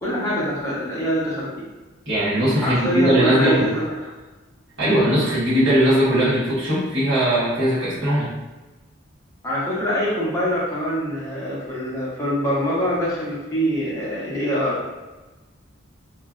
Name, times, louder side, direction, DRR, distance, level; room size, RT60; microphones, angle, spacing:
voice 1, 0.0-1.5 2.6-4.0 9.4-14.8, equal, 15° left, -8 dB, 0.8 m, -24 dB
voice 2, 2.0-3.7 4.8-8.3, right 1 dB, 65° right, -11 dB, 1.5 m, -19 dB
3.1 x 2.4 x 2.4 m, 1.2 s
head